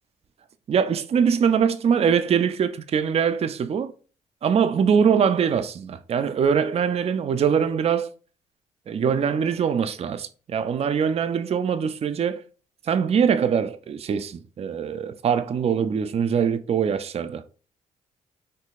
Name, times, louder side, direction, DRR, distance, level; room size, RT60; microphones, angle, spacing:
voice 1, 0.7-3.9 4.4-8.1 8.9-12.4 12.8-17.4, right 7 dB, 40° right, 0.4 m, -23 dB
4.6 x 2.7 x 2.4 m
supercardioid pair, 55°, 15 cm